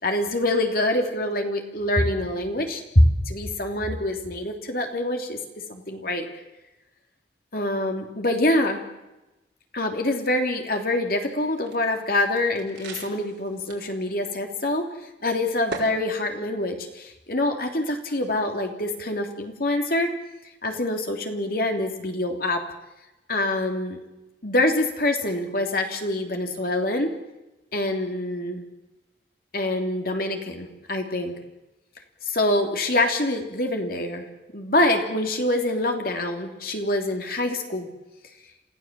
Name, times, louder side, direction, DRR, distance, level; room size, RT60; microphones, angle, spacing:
voice 1, 0.0-5.4 5.7-6.3 7.5-8.8 9.7-14.9 15.2-20.1 20.6-22.6 23.3-24.0 24.4-27.1 27.7-28.6 29.5-31.3 32.2-34.3 34.5-37.9, left 1 dB, 55° left, 4 dB, 3.1 m, -25 dB
sound 1, 11.2-14.0 14.3-14.4 15.7-15.9, right 3 dB, 75° right, 4.7 m, -39 dB
28.0 x 15.5 x 7.6 m, 1.0 s
head